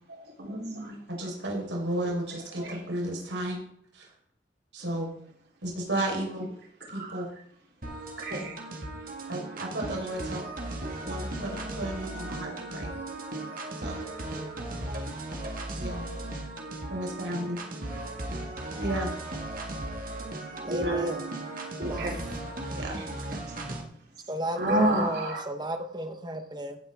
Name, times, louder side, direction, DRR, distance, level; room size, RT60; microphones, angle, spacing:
voice 1, 0.1-1.0 2.6-2.7 6.9-7.2 8.2-8.5 20.6-21.1 21.8-22.1 24.6-25.4, right 1 dB, 65° right, -1 dB, 4.0 m, -29 dB
voice 2, 1.1-3.6 3.9-4.1 4.7-5.1 5.6-6.5 6.9-7.3 9.3-10.5 11.0-12.9 13.8-14.0 15.8-16.0 16.9-17.6 18.8-19.2 20.6-20.8 22.7-23.0, right 1 dB, 85° right, 0 dB, 4.7 m, -33 dB
sound 1, 7.8-23.8, right 1 dB, 50° right, 1.9 m, -36 dB
voice 3, 20.7-21.3 21.9-22.2 24.3-26.8, equal, 25° right, 7 dB, 1.2 m, -33 dB
16.5 x 9.5 x 3.7 m, 0.66 s
head